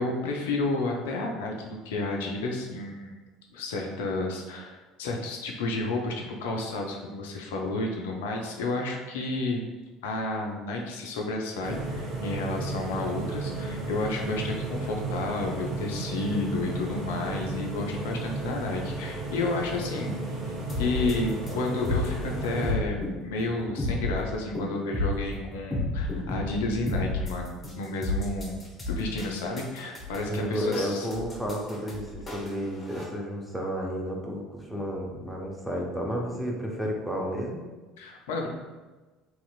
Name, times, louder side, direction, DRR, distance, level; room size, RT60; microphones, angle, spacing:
voice 1, 0.0-3.1 3.5-9.6 10.0-20.2 20.8-28.6 28.9-31.1 38.0-38.5, left 2 dB, 70° left, 1 dB, 0.4 m, -31 dB
sound 1, 11.6-22.7, right 2 dB, 45° right, 0.7 m, -34 dB
sound 2, 20.7-33.0, left 2 dB, 20° left, 1.0 m, -32 dB
voice 2, 30.3-37.6, equal, ahead, -1 dB, 0.7 m, -32 dB
3.0 x 2.9 x 2.3 m, 1.2 s
figure-of-eight pair, 65°, 0 cm